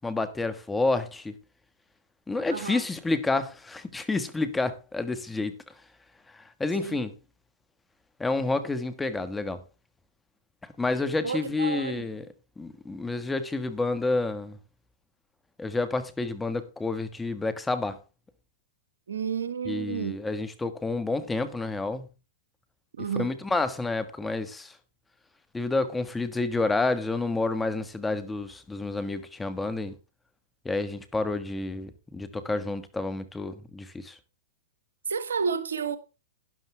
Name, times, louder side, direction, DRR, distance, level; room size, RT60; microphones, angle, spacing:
voice 1, 0.0-1.3 2.3-5.5 6.3-7.1 8.2-9.6 10.6-12.3 12.6-14.6 15.6-18.0 19.7-22.1 23.2-24.8 25.5-29.9 30.7-34.2, left 3 dB, 10° left, 1.6 m, -29 dB
voice 2, 2.5-2.8 6.8-7.0 11.2-12.1 19.1-20.2 23.0-23.3 35.1-36.0, right 6 dB, 85° right, 1.6 m, -31 dB
12.5 x 11.5 x 3.4 m
hypercardioid pair, 125°, 0 cm